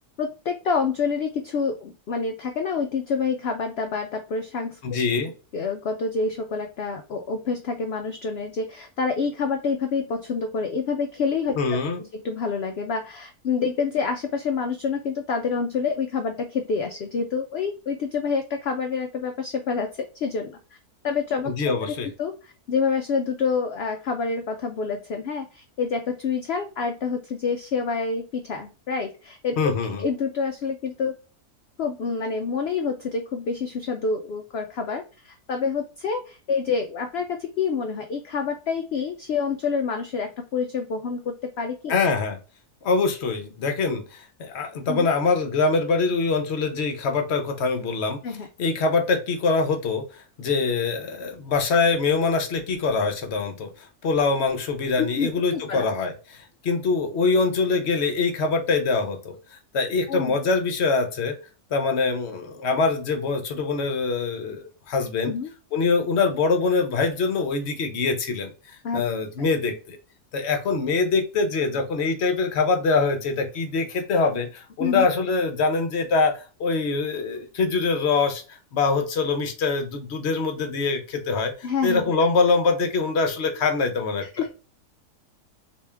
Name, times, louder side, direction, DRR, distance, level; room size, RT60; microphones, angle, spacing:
voice 1, 0.2-4.8 5.1-5.2 5.5-11.6 12.0-20.6 21.0-21.5 21.9-31.1 31.8-41.9 44.9-45.1 48.2-48.5 55.0-55.9 60.1-60.4 65.2-65.5 68.8-69.0 74.8-75.1 81.6-82.2 84.2-84.5, left 5 dB, 85° left, 5 dB, 0.5 m, -27 dB
voice 2, 4.8-5.3 11.6-12.0 21.5-22.1 29.6-30.0 41.9-42.4 42.8-48.2 48.6-61.4 61.7-65.3 65.7-70.0 70.3-78.4 78.7-84.5, left 4 dB, 55° left, 6 dB, 0.8 m, -24 dB
3.4 x 2.9 x 3.3 m, 0.34 s
omnidirectional pair, 1.6 m